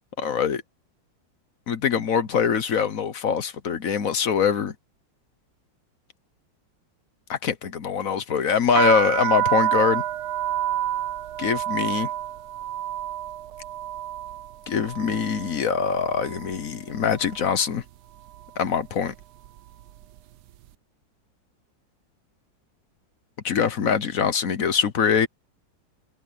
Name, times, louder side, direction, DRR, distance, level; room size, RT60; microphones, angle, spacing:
voice 1, 0.2-0.6 1.7-4.7 7.3-10.0 11.4-12.1 14.7-17.8 18.6-19.1 23.4-25.3, left 7 dB, 55° left, 1.2 m, -23 dB
sound 1, 8.7-16.6 16.9-17.5 18.2-18.5 18.7-20.2, right 12 dB, 70° right, 1.1 m, -29 dB
omnidirectional pair, 2.0 m